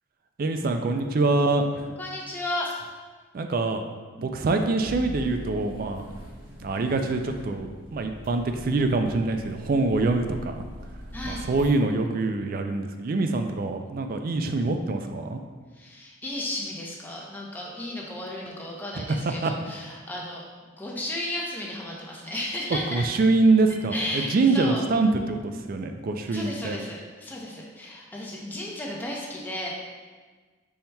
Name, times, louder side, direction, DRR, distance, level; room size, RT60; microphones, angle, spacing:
voice 1, 0.4-1.9 3.3-3.8 4.2-6.0 6.6-10.7 11.2-15.4 19.0-19.5 22.9-26.8, right 3 dB, 45° right, 6 dB, 0.3 m, -25 dB
voice 2, 2.0-2.8 11.1-11.5 15.7-20.4 20.8-23.1 23.9-24.8 26.3-29.7, left 1 dB, 10° left, -3 dB, 0.6 m, -34 dB
sound 1, 4.8-11.7, equal, 65° right, 1.1 m, -42 dB
5.4 x 4.4 x 2.2 m, 1.4 s
head